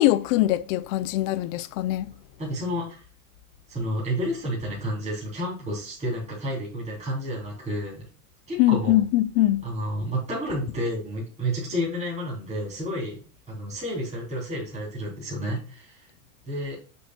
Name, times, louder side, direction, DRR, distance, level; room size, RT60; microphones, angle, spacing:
voice 1, 0.0-2.1 8.6-9.6, left 15 dB, 55° left, 0.7 m, -22 dB
voice 2, 2.4-3.0 3.7-8.1 8.5-9.0 9.6-13.2 13.5-16.0 16.4-16.8, equal, 15° right, 3.3 m, -30 dB
7.8 x 5.4 x 2.3 m
supercardioid pair, 145°, 46 cm